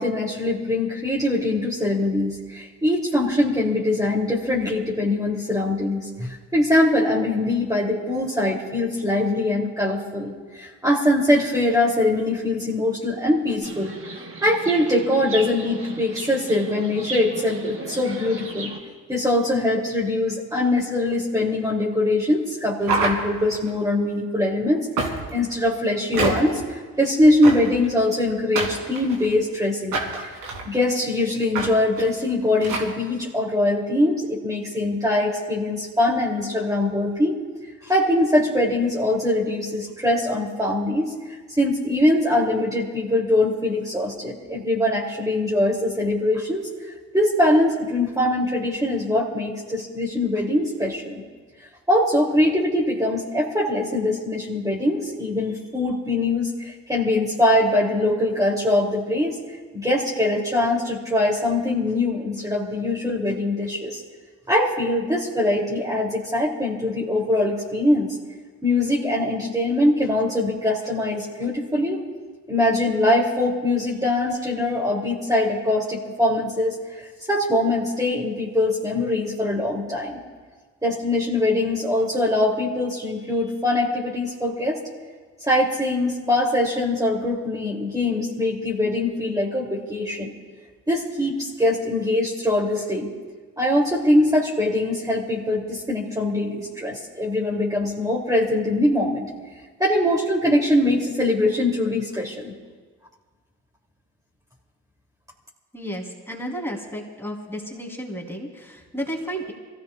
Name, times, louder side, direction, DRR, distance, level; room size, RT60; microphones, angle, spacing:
voice 1, 0.0-13.9 14.4-18.7 19.1-30.3 30.6-37.4 37.8-41.1 41.6-51.2 51.9-59.3 59.7-64.0 64.5-68.2 68.6-72.0 72.5-80.2 80.8-84.8 85.4-90.3 90.9-93.1 93.6-99.3 99.8-102.5, left 1 dB, 10° right, -4 dB, 3.2 m, -22 dB
Chirp tweet, 13.6-18.8, right 3 dB, 45° right, 3.2 m, -36 dB
sound 1, 22.8-23.7 25.0-25.4 26.1-26.6 27.4-27.9 28.6-29.4 29.9-30.6 31.5-31.7 32.0-32.1 32.6-32.9, right 3 dB, 75° right, 3.2 m, -26 dB
voice 2, 105.7-109.5, equal, 5° left, -1 dB, 3.8 m, -32 dB
26.5 x 16.5 x 2.5 m, 1.4 s
supercardioid pair, 65°, 32 cm